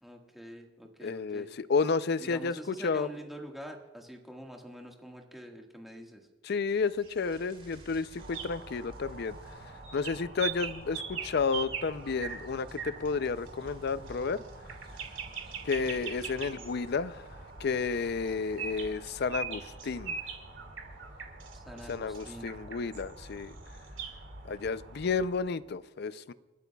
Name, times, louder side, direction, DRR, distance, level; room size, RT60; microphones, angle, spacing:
voice 1, 0.0-1.5 2.2-6.3 21.5-22.5, equal, ahead, 1.7 m, -46 dB
voice 2, 1.0-3.1 6.4-9.4 9.9-14.4 15.6-17.3 17.6-20.2 21.9-23.5 24.5-26.3, left 4 dB, 60° left, 0.5 m, -31 dB
sound 1, 6.6-18.9, right 1 dB, 30° right, 3.9 m, -58 dB
sound 2, 8.2-25.4, right 5 dB, 90° right, 2.0 m, -42 dB
29.5 x 12.0 x 2.3 m
head